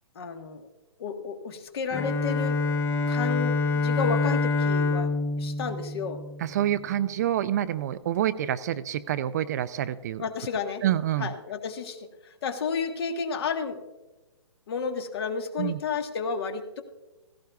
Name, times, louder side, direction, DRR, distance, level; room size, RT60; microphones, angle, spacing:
voice 1, 0.1-0.7 1.0-2.6 3.1-5.1 5.4-6.2 10.2-10.8 11.2-13.8 14.7-16.8, left 5 dB, 50° left, 7 dB, 1.4 m, -32 dB
Bowed string instrument, 1.9-6.8, left 3 dB, 15° left, 0.6 m, -26 dB
voice 2, 6.4-10.2 10.8-11.3 15.6-15.8, right 11 dB, 35° right, 13 dB, 0.4 m, -27 dB
16.5 x 15.5 x 2.3 m, 1.1 s
hypercardioid pair, 150°, 16 cm